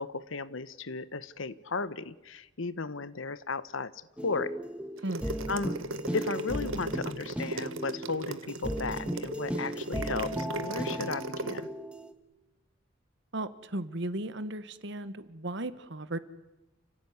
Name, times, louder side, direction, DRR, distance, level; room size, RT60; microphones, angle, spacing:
voice 1, 0.0-3.9 4.2-4.6 5.5-5.8 6.1-11.7, left 3 dB, 75° left, 16 dB, 1.1 m, -35 dB
sound 1, 4.2-12.1, equal, 5° right, 1.5 m, -36 dB
sound 2, 5.0-11.6, right 2 dB, 85° right, 1.4 m, -37 dB
voice 2, 13.3-16.2, right 1 dB, 65° right, 13 dB, 1.5 m, -35 dB
29.5 x 16.5 x 9.6 m, 1.0 s
head